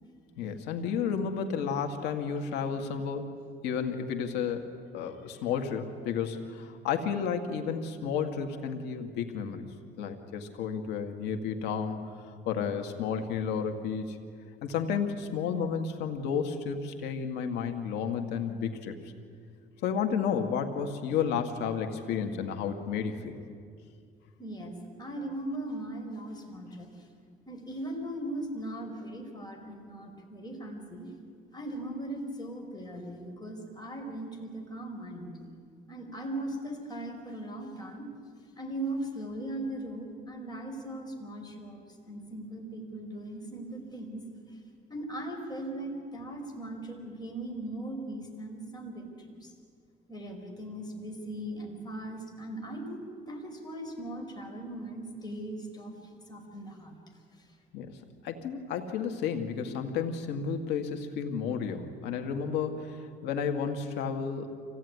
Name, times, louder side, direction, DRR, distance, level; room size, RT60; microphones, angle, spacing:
voice 1, 0.4-3.3 3.6-9.7 10.0-12.0 12.5-14.2 14.6-19.0 19.8-23.4 57.7-58.0 58.2-64.5, left 6 dB, 90° left, 6 dB, 2.3 m, -32 dB
voice 2, 24.4-26.9 27.5-31.1 31.5-35.4 35.9-38.1 38.5-44.2 44.9-49.5 50.1-55.9 56.3-56.9, right 1 dB, 25° left, 2 dB, 5.1 m, -39 dB
25.0 x 17.0 x 9.8 m, 2.2 s
cardioid pair, 110°, 17 cm